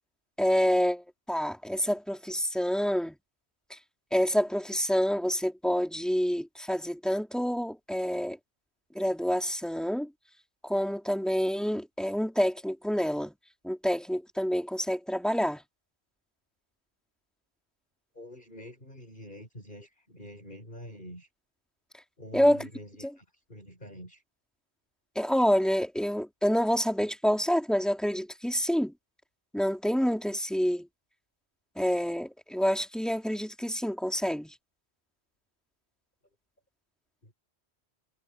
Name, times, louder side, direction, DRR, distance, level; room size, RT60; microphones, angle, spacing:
voice 1, 0.4-3.2 4.1-8.4 8.9-10.1 10.6-13.3 13.6-15.6 22.3-22.7 25.1-28.9 29.5-30.9 31.8-34.5, equal, ahead, 3.1 m, -27 dB
voice 2, 18.1-21.3 22.2-24.2 37.2-37.3, equal, 50° left, 8.1 m, -46 dB
omnidirectional pair, 1.1 m